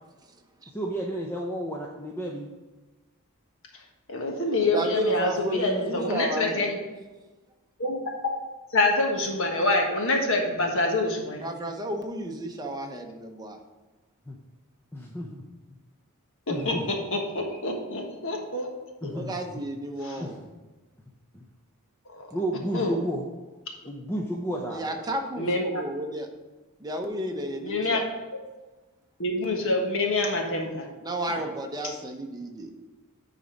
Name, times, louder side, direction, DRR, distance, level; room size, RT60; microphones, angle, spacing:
voice 1, 0.7-2.5 14.3-14.4 14.9-15.4 16.5-16.8 19.0-19.3 20.2-20.3 21.3-21.4 22.3-23.3 23.9-25.0, equal, 10° left, -1 dB, 0.6 m, -32 dB
voice 2, 4.1-6.8 7.8-8.0 8.7-11.4 16.5-18.7 19.0-19.1 20.0-20.2 22.1-22.3 22.7-22.9 25.4-25.8 27.6-28.0 29.2-30.9 31.3-31.4 31.8-31.9, left 2 dB, 60° left, 2 dB, 1.4 m, -26 dB
voice 3, 4.7-6.7 11.4-13.6 19.1-20.4 24.7-26.3 26.8-28.0 31.0-32.7, right 1 dB, 15° right, 2 dB, 0.9 m, -32 dB
10.0 x 4.1 x 5.1 m, 1.2 s
head